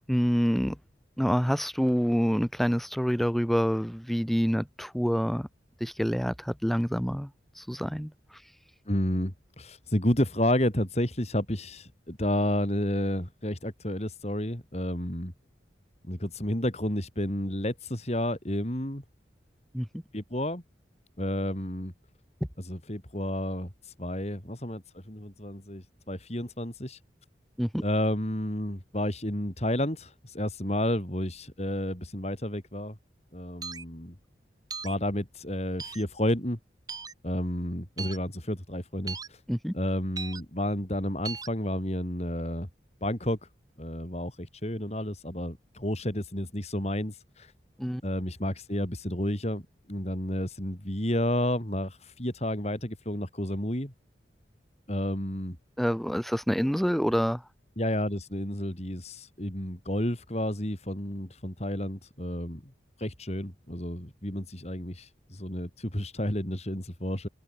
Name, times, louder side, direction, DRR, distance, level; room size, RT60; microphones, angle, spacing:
voice 1, 0.1-0.8 1.2-5.5 5.8-7.3 7.6-8.1 19.7-19.9 27.6-27.8 39.5-39.7 47.8-48.0 55.8-57.4, equal, ahead, 6.7 m, -27 dB
voice 2, 8.9-15.3 16.1-19.0 20.1-20.6 21.2-21.9 22.6-23.7 24.0-27.0 27.8-33.0 33.3-34.1 34.8-36.6 37.2-39.2 39.7-42.7 43.0-43.4 43.8-47.5 48.0-49.6 49.9-53.9 54.9-55.6 57.8-62.7 63.0-67.3, left 1 dB, 35° left, 4.5 m, -31 dB
sound 1, 33.6-33.8 34.7-35.0 35.8-36.0 36.9-37.1 38.0-38.2 39.1-39.3 40.2-40.4 41.2-41.5, right 5 dB, 20° right, 3.8 m, -37 dB
head